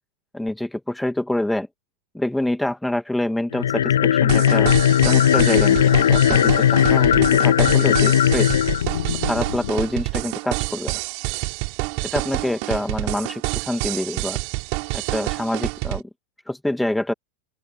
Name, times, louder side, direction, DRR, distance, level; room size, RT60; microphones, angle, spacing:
voice 1, 0.3-1.7 2.1-4.7 5.0-8.6 9.3-11.0 12.1-14.4 14.9-16.0 16.5-17.1, left 1 dB, 5° left, 2.4 m, -26 dB
sound 1, 3.5-9.8, left 10 dB, 65° left, 0.6 m, -17 dB
sound 2, 4.3-16.0, right 40 dB or more, 45° right, 6.3 m, -28 dB
open air
figure-of-eight pair, 90°, 0 cm